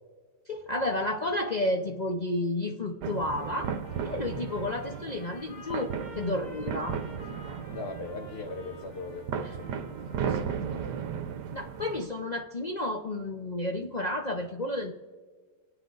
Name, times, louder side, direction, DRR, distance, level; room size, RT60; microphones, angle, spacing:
voice 1, 0.5-3.8 4.0-7.0 11.5-14.9, left 1 dB, 65° left, 3 dB, 0.4 m, -31 dB
sound 1, 3.0-12.0, right 7 dB, 75° right, 1.4 m, -35 dB
Trumpet, 3.4-10.5, left 2 dB, 30° left, 1.3 m, -51 dB
voice 2, 7.7-11.0, left 3 dB, 45° left, 4 dB, 0.9 m, -40 dB
28.5 x 9.7 x 3.9 m, 1.5 s
omnidirectional pair, 1.8 m